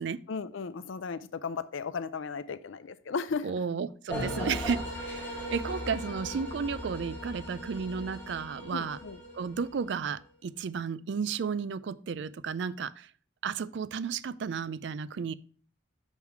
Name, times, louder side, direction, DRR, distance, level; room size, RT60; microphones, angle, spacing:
voice 1, 0.3-3.5 8.7-9.2, left 5 dB, 75° left, 14 dB, 0.5 m, -35 dB
voice 2, 3.4-9.0 9.3-13.1 13.4-15.3, right 6 dB, 60° right, 17 dB, 0.3 m, -33 dB
sound 1, 4.1-10.1, equal, 10° left, 3.3 m, -38 dB
6.2 x 5.5 x 4.6 m, 0.43 s
head